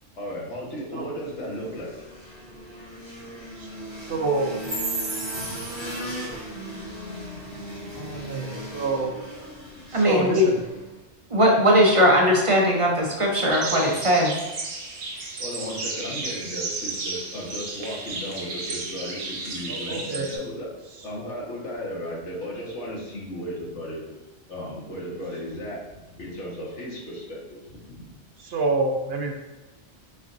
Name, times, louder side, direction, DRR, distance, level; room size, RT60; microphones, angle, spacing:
voice 1, 0.2-1.9 5.3-5.6 8.2-8.7 15.4-20.7 21.0-24.0 24.5-25.8 26.1-28.1, equal, 70° left, -5 dB, 1.6 m, -35 dB
sound 1, 1.2-11.0, equal, 25° left, 1.4 m, -38 dB
voice 2, 4.1-4.5 7.9-9.1 9.9-10.6 19.7-20.3 28.4-29.3, right 3 dB, 60° right, 2 dB, 0.8 m, -27 dB
voice 3, 9.9-10.5 11.3-14.3, equal, 40° right, -1 dB, 0.5 m, -19 dB
sound 2, 13.5-20.4, right 3 dB, 90° right, 1.2 m, -33 dB
4.2 x 4.1 x 2.5 m, 1.1 s
omnidirectional pair, 1.3 m